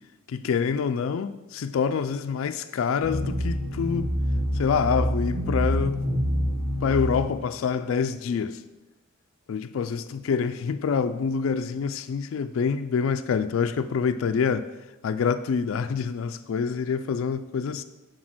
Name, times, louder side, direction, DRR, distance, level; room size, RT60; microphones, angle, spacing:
voice 1, 0.3-4.2 4.5-6.0 6.8-8.6 9.5-14.7 15.0-17.8, left 6 dB, 75° left, 0.3 m, -26 dB
sound 1, 3.0-7.2, equal, 40° right, 1.8 m, -26 dB
6.3 x 4.4 x 6.0 m
head